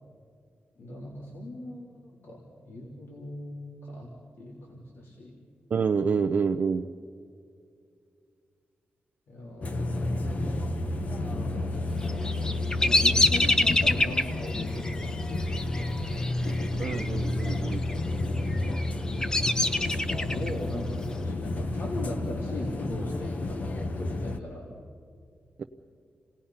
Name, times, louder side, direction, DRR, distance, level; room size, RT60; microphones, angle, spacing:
voice 1, 0.8-4.1 4.4-5.3 9.3-16.0 17.4-24.7, left 1 dB, 75° left, -3 dB, 3.4 m, -40 dB
voice 2, 5.7-6.9 16.8-17.8 25.6-25.7, right 5 dB, 45° right, 6 dB, 0.6 m, -27 dB
sound 1, 9.6-24.4, left 2 dB, 40° left, 1.0 m, -31 dB
Bird vocalization bird call bird song, 12.0-17.1 17.3-17.9 18.5-20.5, left 2 dB, 15° left, 0.7 m, -26 dB
28.5 x 19.0 x 5.7 m, 2.3 s
wide cardioid pair, 165°, 4 cm